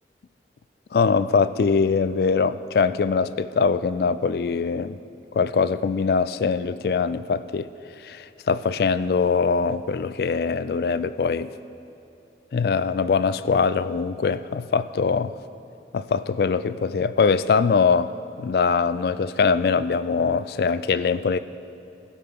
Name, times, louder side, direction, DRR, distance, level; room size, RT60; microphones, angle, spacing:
voice 1, 0.9-5.0 5.3-7.7 8.0-11.5 12.5-15.3 15.9-18.1 18.4-21.4, left 5 dB, 55° left, 15 dB, 0.3 m, -22 dB
15.5 x 5.5 x 5.9 m, 2.9 s
head